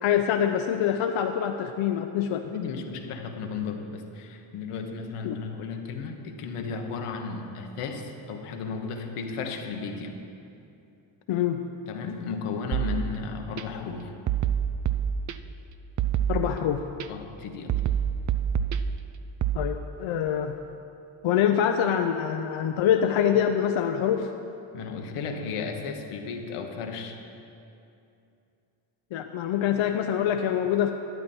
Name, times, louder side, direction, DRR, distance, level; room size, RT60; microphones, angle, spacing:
voice 1, 0.0-2.4 5.2-5.4 11.3-11.6 16.3-16.8 19.5-20.6 21.2-24.3 29.1-30.9, left 9 dB, 70° left, 5 dB, 0.7 m, -25 dB
voice 2, 2.4-10.2 11.9-14.1 16.6-16.7 17.1-17.8 24.7-27.2, left 5 dB, 90° left, 4 dB, 1.2 m, -34 dB
sound 1, 12.7-13.6 14.3-15.6 16.0-17.1 17.7-19.6, right 9 dB, 40° right, 0.5 m, -28 dB
12.5 x 9.6 x 4.4 m, 2.7 s
cardioid pair, 80°, 50 cm